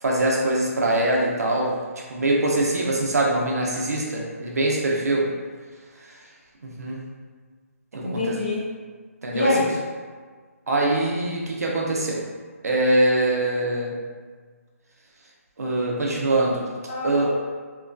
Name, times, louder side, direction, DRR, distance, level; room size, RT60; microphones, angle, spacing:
voice 1, 0.0-5.3 6.6-7.0 7.9-8.4 9.2-9.5 10.7-12.2 12.6-13.9 15.6-16.7 17.0-17.3, right 1 dB, 75° right, -2 dB, 0.6 m, -23 dB
voice 2, 8.0-8.7 9.3-9.8 16.9-17.3, left 2 dB, 35° left, -11 dB, 1.3 m, -26 dB
2.9 x 2.2 x 2.5 m, 1.5 s
hypercardioid pair, 175°, 8 cm